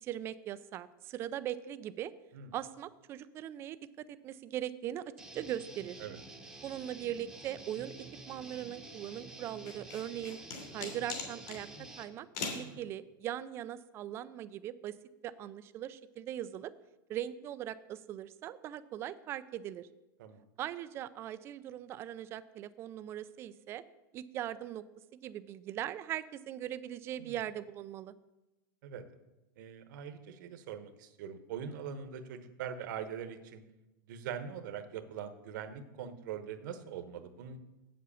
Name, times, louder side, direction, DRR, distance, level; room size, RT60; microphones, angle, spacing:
voice 1, 0.0-2.1 2.5-3.8 4.2-5.0 5.3-6.0 6.6-7.9 8.3-10.4 10.7-11.7 12.0-14.9 15.2-16.7 17.1-19.9 20.6-23.8 24.1-24.8 25.1-28.1, right 11 dB, 20° right, 14 dB, 0.3 m, -40 dB
Guitar, 5.2-12.0, right 2 dB, 5° right, 0.9 m, -50 dB
sound 1, 9.7-11.6 12.3-12.7, left 5 dB, 50° left, 3.1 m, -39 dB
voice 2, 29.6-33.6 34.1-37.6, right 8 dB, 55° right, 10 dB, 1.1 m, -42 dB
7.9 x 7.6 x 6.9 m, 1.0 s
supercardioid pair, 160°, 12 cm